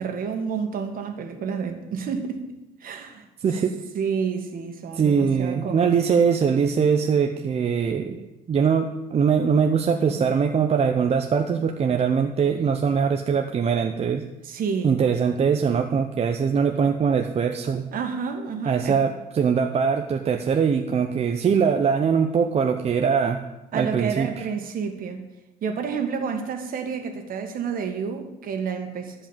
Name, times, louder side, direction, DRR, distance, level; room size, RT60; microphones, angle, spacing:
voice 1, 0.0-2.5 2.8-3.3 3.9-5.9 14.4-15.0 17.9-19.0 23.7-25.2 25.6-29.2, right 6 dB, 55° right, 5 dB, 1.9 m, -29 dB
voice 2, 3.4-3.8 4.9-14.2 14.8-17.8 18.7-23.4 23.7-24.5, right 6 dB, 40° right, 4 dB, 0.8 m, -22 dB
13.0 x 5.5 x 8.8 m, 0.96 s
cardioid pair, 110°, 17 cm